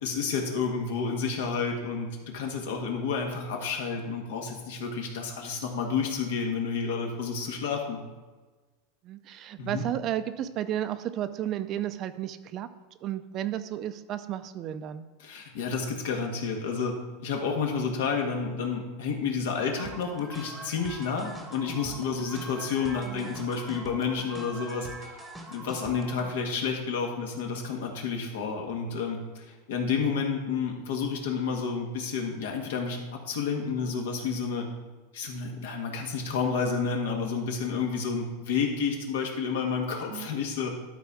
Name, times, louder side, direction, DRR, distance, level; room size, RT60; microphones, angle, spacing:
voice 1, 0.0-8.0 9.6-9.8 15.2-16.9 17.2-25.2 25.5-34.7 35.1-40.7, left 5 dB, 75° left, 2 dB, 1.7 m, -30 dB
voice 2, 9.0-12.7 13.0-15.1 23.0-23.3 26.2-26.4 33.9-34.1 40.1-40.3, right 11 dB, 35° right, 12 dB, 0.4 m, -33 dB
sound 1, 19.8-26.3, right 1 dB, 5° right, 1.0 m, -43 dB
12.0 x 4.2 x 4.8 m, 1.3 s
supercardioid pair, 145°, 0 cm